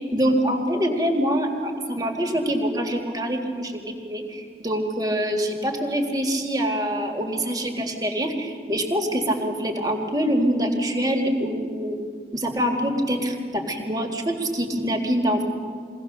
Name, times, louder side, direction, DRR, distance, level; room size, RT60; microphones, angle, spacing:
voice 1, 0.1-12.0 12.3-15.4, equal, 20° right, 3 dB, 1.8 m, -25 dB
23.0 x 16.5 x 6.6 m, 2.2 s
head